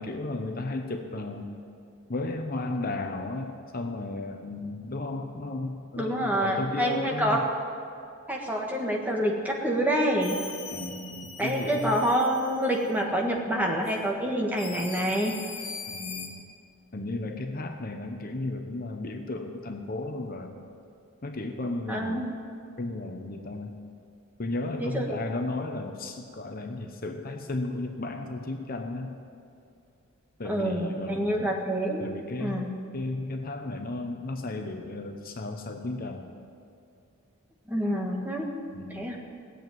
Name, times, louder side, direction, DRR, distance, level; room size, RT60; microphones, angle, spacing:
voice 1, 0.0-1.5 2.1-7.4 10.7-12.0 15.9-16.4 16.9-20.6 21.2-22.2 22.8-23.7 24.4-29.2 30.4-31.6 32.0-32.6 32.9-36.3 38.7-39.1, left 2 dB, 40° left, 4 dB, 0.9 m, -34 dB
voice 2, 6.0-7.5 8.3-10.4 11.4-15.4 21.9-22.3 24.8-25.1 30.4-32.0 32.4-32.7 37.7-38.5 38.9-39.2, equal, 10° right, -1 dB, 1.6 m, -27 dB
sound 1, 10.2-13.0 13.8-14.0 14.5-16.3, left 6 dB, 75° left, 2.1 m, -41 dB
17.0 x 8.0 x 9.2 m, 2.5 s
head